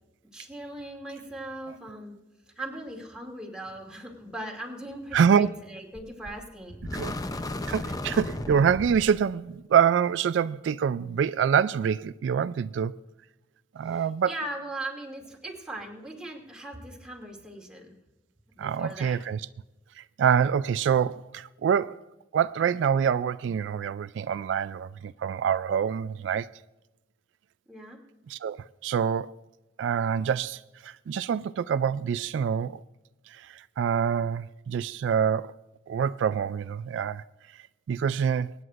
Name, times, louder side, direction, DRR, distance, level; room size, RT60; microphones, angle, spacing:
voice 1, 0.3-2.1 2.6-6.8 14.3-17.9 18.6-19.2 27.7-28.0, right 1 dB, 5° right, 2.5 m, -39 dB
voice 2, 5.1-5.5 6.9-7.1 7.7-13.0 13.7-14.4 18.6-19.5 20.0-22.0 22.3-26.5 28.3-29.4 29.8-32.8 33.3-35.6 35.9-38.5, right 7 dB, 75° right, 0.3 m, -26 dB
sound 1, 5.9-6.4 6.8-9.2, left 2 dB, 20° left, 0.6 m, -34 dB
24.0 x 9.5 x 2.5 m
head